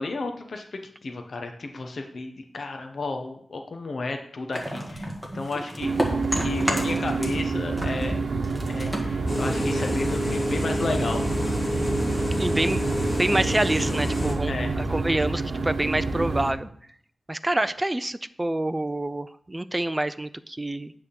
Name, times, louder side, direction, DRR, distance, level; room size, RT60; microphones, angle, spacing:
voice 1, 0.0-5.1 5.3-5.9 6.4-8.2 8.7-11.2 14.4-14.7, left 3 dB, 60° left, 4 dB, 0.9 m, -32 dB
sound 1, 4.5-7.5 7.7-10.1, equal, 5° left, 1.5 m, -31 dB
sound 2, 5.8-16.5, right 3 dB, 60° right, 1.0 m, -28 dB
sound 3, 9.3-14.4, left 1 dB, 40° left, 1.8 m, -29 dB
voice 2, 12.4-12.8 13.2-16.7 17.3-20.9, right 1 dB, 15° right, 14 dB, 0.4 m, -27 dB
9.3 x 3.6 x 6.9 m, 0.65 s
wide cardioid pair, 115°, 0 cm